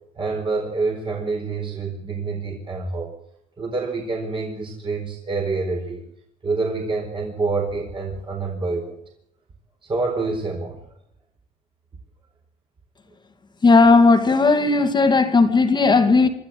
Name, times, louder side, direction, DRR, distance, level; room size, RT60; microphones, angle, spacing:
voice 1, 0.2-3.1 3.6-6.0 6.4-8.9 9.8-10.8, right 3 dB, 30° right, 0 dB, 4.5 m, -27 dB
voice 2, 13.6-16.3, left 3 dB, 25° left, 7 dB, 2.3 m, -15 dB
25.5 x 13.5 x 7.7 m, 0.79 s
cardioid pair, 110°, 17 cm